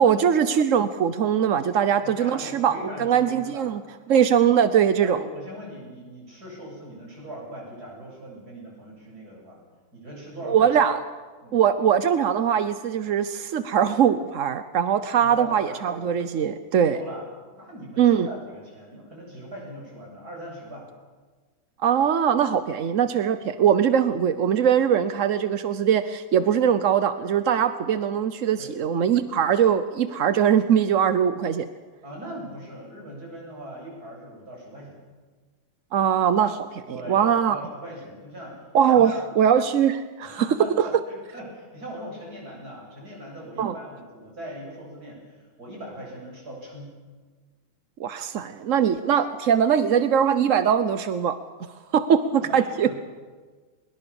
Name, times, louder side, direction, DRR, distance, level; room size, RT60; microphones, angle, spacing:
voice 1, 0.0-3.8 4.1-5.2 10.5-11.0 11.5-17.0 18.0-18.3 21.8-31.7 35.9-37.6 38.7-40.4 40.8-40.9 43.6-43.7 48.0-51.4 51.9-53.0, right 8 dB, 65° right, 11 dB, 0.8 m, -21 dB
voice 2, 1.8-3.7 5.0-9.6 9.9-10.7 11.4-11.6 15.1-15.8 16.8-17.3 17.6-20.9 28.6-28.7 32.0-35.0 36.9-39.2 40.2-46.9 52.4-53.0, equal, 40° right, -2 dB, 8.7 m, -40 dB
22.0 x 21.5 x 7.1 m, 1.4 s
omnidirectional pair, 2.4 m